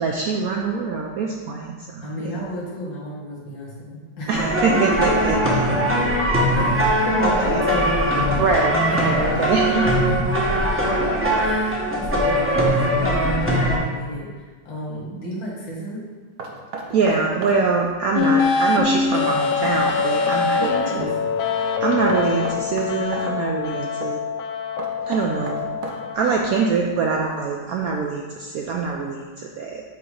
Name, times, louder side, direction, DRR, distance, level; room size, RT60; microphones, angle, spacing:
voice 1, 0.0-2.4 4.3-5.4 7.2-7.6 8.4-9.9 16.9-21.1 21.5-24.2 25.0-25.7 26.1-29.8, right 4 dB, 80° right, 1 dB, 0.8 m, -24 dB
voice 2, 2.0-4.3 4.7-5.0 5.3-6.0 6.5-8.6 9.0-9.9 10.3-10.4 11.4-16.1 20.5-21.1, left 1 dB, 75° left, -5 dB, 2.3 m, -31 dB
sound 1, 4.3-13.8, equal, 15° right, 0.4 m, -20 dB
Knock, 16.4-17.6 19.3-20.5 22.1-23.3 24.8-26.2, right 4 dB, 60° right, 1.1 m, -34 dB
sound 2, 18.1-26.1, left 5 dB, 90° left, 1.4 m, -24 dB
7.9 x 2.9 x 4.9 m, 1.4 s
omnidirectional pair, 2.1 m